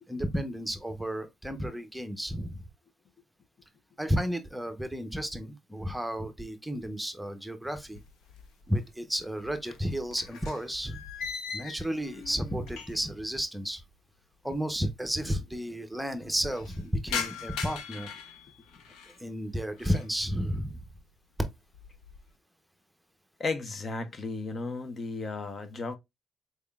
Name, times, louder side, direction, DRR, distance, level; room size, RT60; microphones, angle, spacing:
voice 1, 0.1-2.6 4.0-8.0 8.7-11.0 11.5-13.8 14.4-18.1 19.2-20.8, equal, 5° right, 0.7 m, -32 dB
sound 1, 7.9-8.8 9.1-13.2 13.5-13.6 14.4-14.5 14.7-14.8 15.1-15.6 16.0-19.2 19.6-20.1 20.6-21.0 21.4-22.3, left 6 dB, 90° left, 0.7 m, -40 dB
voice 2, 23.4-26.0, left 3 dB, 45° left, 0.6 m, -34 dB
4.2 x 3.4 x 2.3 m
cardioid pair, 90°, 0 cm